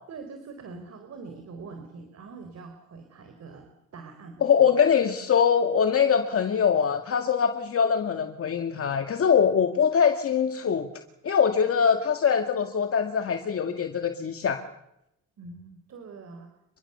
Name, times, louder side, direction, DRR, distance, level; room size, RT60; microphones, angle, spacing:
voice 1, 0.1-4.7 9.9-10.0 15.4-16.5, right 4 dB, 60° right, 6 dB, 4.1 m, -44 dB
voice 2, 4.4-10.9 11.2-14.6, left 7 dB, 50° left, 6 dB, 2.0 m, -23 dB
27.5 x 22.0 x 7.0 m, 0.82 s
cardioid pair, 90°, 30 cm